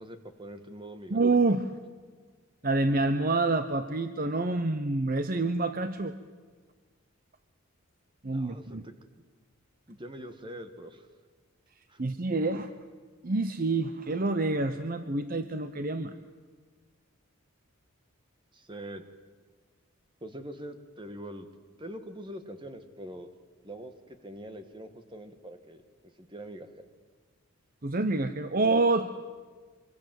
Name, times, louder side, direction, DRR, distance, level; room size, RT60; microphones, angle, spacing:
voice 1, 0.0-1.2 8.3-8.9 9.9-11.1 11.9-12.0 18.5-19.0 20.2-21.5 21.8-23.3 23.6-25.8 26.2-26.9, right 1 dB, 20° right, 8 dB, 1.5 m, -43 dB
voice 2, 1.1-1.7 2.6-6.1 8.2-8.8 12.0-12.7 13.2-16.1 27.8-29.3, right 3 dB, 40° right, 10 dB, 0.8 m, -27 dB
25.0 x 24.0 x 7.6 m, 1.5 s
head